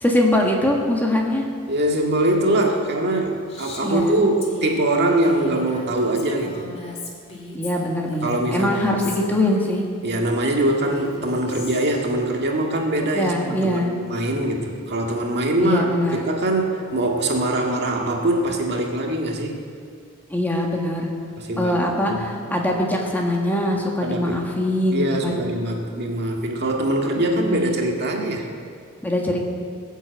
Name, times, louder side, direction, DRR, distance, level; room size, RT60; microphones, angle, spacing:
voice 1, 0.0-1.4 3.8-4.1 7.5-9.8 13.1-13.9 15.6-16.2 20.3-21.1 21.6-25.5 27.3-27.7 29.0-29.4, left 1 dB, 10° left, -1 dB, 1.6 m, -22 dB
voice 2, 1.7-6.7 8.2-9.2 10.0-19.6 21.4-22.5 24.0-24.4 24.9-28.5, right 1 dB, 50° right, 1 dB, 1.9 m, -23 dB
Female speech woman speaking, 3.5-9.9 10.7-12.1, left 2 dB, 30° left, 2.1 m, -37 dB
20.5 x 8.1 x 7.9 m, 2.3 s
head